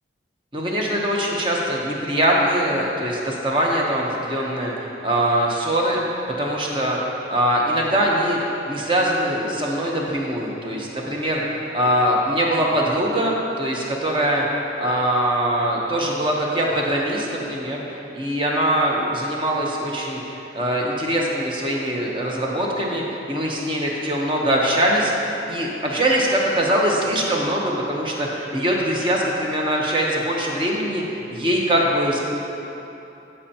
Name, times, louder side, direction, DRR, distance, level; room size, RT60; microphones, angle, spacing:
voice 1, 0.5-6.0 6.4-7.0 7.3-14.5 14.8-25.1 25.5-32.2, right 1 dB, 25° right, -2 dB, 0.9 m, -22 dB
14.0 x 5.5 x 2.9 m, 3.0 s
head